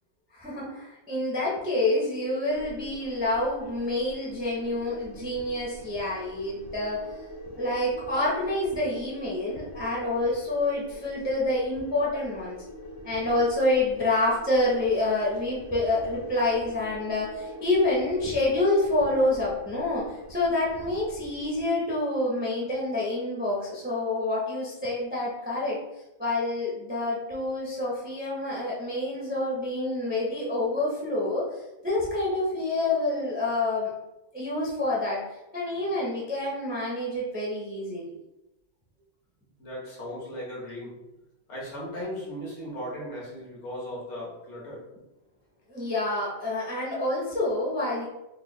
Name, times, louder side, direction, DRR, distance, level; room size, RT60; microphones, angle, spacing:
voice 1, 0.3-7.1 7.6-12.6 13.0-25.8 26.2-33.9 34.3-35.2 35.5-38.1 45.7-48.1, left 2 dB, 10° right, -5 dB, 0.5 m, -27 dB
sound 1, 2.5-21.6, equal, 45° left, 0.5 m, -44 dB
voice 2, 39.6-41.0 41.5-44.8, equal, 65° left, -5 dB, 1.5 m, -37 dB
3.8 x 2.2 x 3.1 m, 0.95 s
omnidirectional pair, 1.3 m